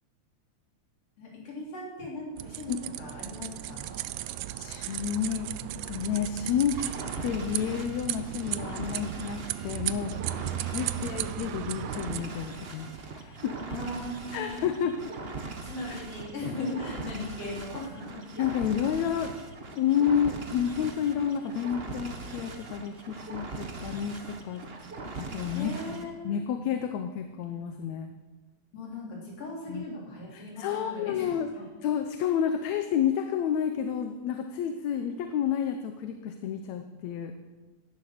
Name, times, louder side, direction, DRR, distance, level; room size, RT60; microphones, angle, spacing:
voice 1, 1.2-4.0 13.7-14.8 15.6-18.2 25.5-26.4 28.7-31.3 31.6-31.7, left 2 dB, 55° left, -3 dB, 4.7 m, -38 dB
sound 1, 2.4-12.2, right 14 dB, 85° right, 2.0 m, -36 dB
voice 2, 4.6-5.5 5.9-6.8 7.2-10.2 10.6-13.6 14.3-15.1 15.9-16.1 18.4-19.3 19.7-24.6 25.2-28.1 29.7-29.9 30.3-31.5 31.8-37.3, left 8 dB, 75° left, 7 dB, 2.1 m, -30 dB
sound 2, 6.7-26.1, right 3 dB, 55° right, 0.6 m, -40 dB
16.5 x 11.0 x 6.6 m, 1.2 s
omnidirectional pair, 3.3 m